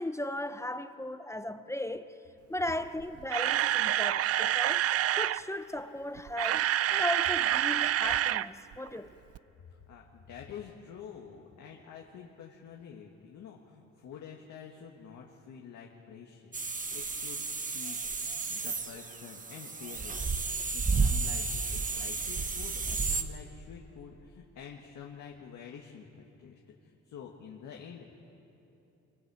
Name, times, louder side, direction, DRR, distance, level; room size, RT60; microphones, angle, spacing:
voice 1, 0.0-2.1 2.5-4.8 5.1-9.1, left 1 dB, 10° left, 0.7 m, -36 dB
Camera, 3.0-5.4 6.2-8.5 8.7-8.9 9.3-9.4, right 12 dB, 55° right, 0.4 m, -27 dB
voice 2, 9.9-28.2, left 7 dB, 75° left, 1.7 m, -48 dB
sound 1, 16.5-23.2, right 4 dB, 25° right, 1.1 m, -32 dB
25.5 x 23.0 x 4.9 m
cardioid pair, 90°, 30 cm